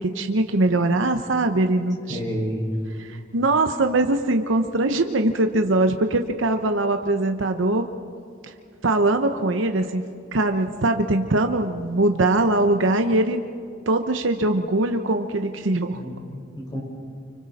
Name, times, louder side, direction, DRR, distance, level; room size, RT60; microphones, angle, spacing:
voice 1, 0.0-2.2 3.0-7.9 8.4-8.5 8.8-10.0 10.3-13.4 13.9-16.0, right 2 dB, 80° right, 6 dB, 1.0 m, -22 dB
voice 2, 2.1-2.6 15.9-16.8, equal, 20° left, -2 dB, 5.5 m, -30 dB
29.5 x 25.5 x 4.2 m, 2.3 s
head